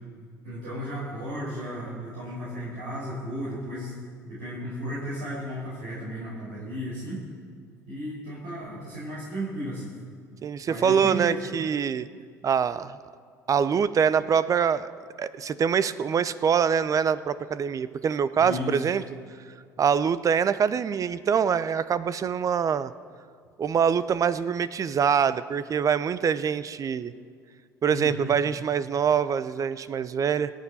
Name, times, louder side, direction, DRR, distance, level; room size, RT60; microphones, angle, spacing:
voice 1, 0.4-3.9 4.2-7.2 7.9-9.9 10.7-11.5 18.4-18.8 27.9-28.3, equal, 70° right, -8 dB, 4.7 m, -34 dB
voice 2, 10.4-12.1 12.4-13.0 13.5-14.9 15.2-19.0 19.8-22.9 23.6-27.1 27.8-30.5, right 7 dB, 35° right, 16 dB, 0.7 m, -24 dB
26.5 x 9.1 x 4.2 m, 2.1 s
figure-of-eight pair, 60°, 10 cm